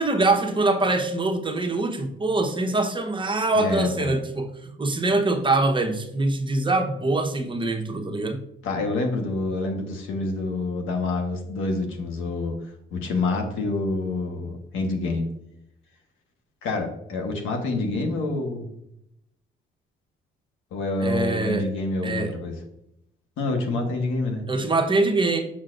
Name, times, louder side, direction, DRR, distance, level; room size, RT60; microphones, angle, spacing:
voice 1, 0.0-8.4 21.0-21.7 22.0-22.3 24.5-25.4, right 2 dB, 25° right, 4 dB, 0.9 m, -24 dB
voice 2, 3.5-4.2 8.6-12.5 12.9-15.3 16.6-18.7 20.7-22.6 23.4-24.4, left 2 dB, 90° left, 3 dB, 1.3 m, -27 dB
6.3 x 6.0 x 2.5 m, 0.78 s
cardioid pair, 90°, 20 cm